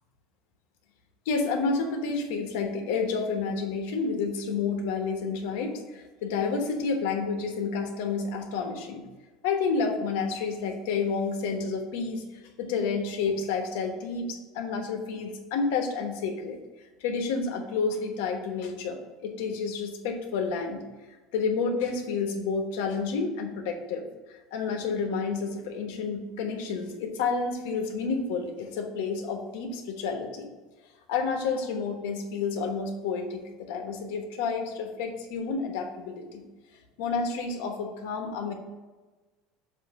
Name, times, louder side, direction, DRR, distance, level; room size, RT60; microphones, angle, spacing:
voice 1, 1.2-9.0 9.4-12.2 12.6-16.6 17.0-20.8 21.3-24.0 24.5-30.5 31.1-36.4 37.0-38.5, left 4 dB, 80° left, 4 dB, 1.1 m, -30 dB
7.3 x 2.7 x 5.5 m, 1.2 s
cardioid pair, 160°, 0 cm